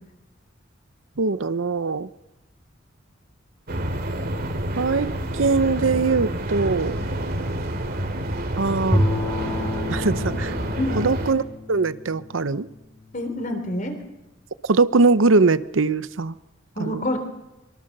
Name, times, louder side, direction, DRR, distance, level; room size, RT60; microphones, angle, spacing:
voice 1, 1.2-2.1 4.8-5.1 5.4-7.0 8.6-9.0 9.9-10.5 11.0-11.4 11.7-12.7 14.7-16.3 16.8-17.0, right 3 dB, 75° right, 14 dB, 0.8 m, -21 dB
sound 1, 3.7-11.3, right 1 dB, 50° right, 2.6 m, -28 dB
Bowed string instrument, 8.9-13.2, left 1 dB, 10° left, 3.1 m, -28 dB
voice 2, 10.8-11.1 13.1-14.0 16.8-17.2, left 1 dB, 40° left, 6 dB, 3.7 m, -27 dB
24.5 x 23.5 x 6.7 m, 1.0 s
head